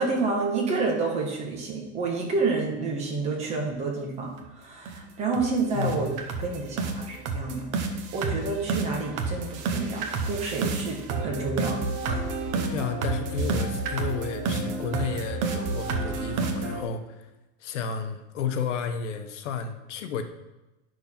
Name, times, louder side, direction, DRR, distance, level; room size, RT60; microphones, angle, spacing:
voice 1, 0.0-6.1 6.4-7.7 8.1-11.8 12.1-12.2, right 3 dB, 20° right, 0 dB, 1.2 m, -29 dB
sound 1, 4.4-4.5 4.9-5.0 5.3-5.5 5.8-16.8, right 3 dB, 35° right, 0.9 m, -29 dB
voice 2, 5.7-6.1 12.6-17.3 17.6-20.2, left 6 dB, 80° left, 8 dB, 1.1 m, -32 dB
9.7 x 6.3 x 4.4 m, 1.0 s
supercardioid pair, 180°, 36 cm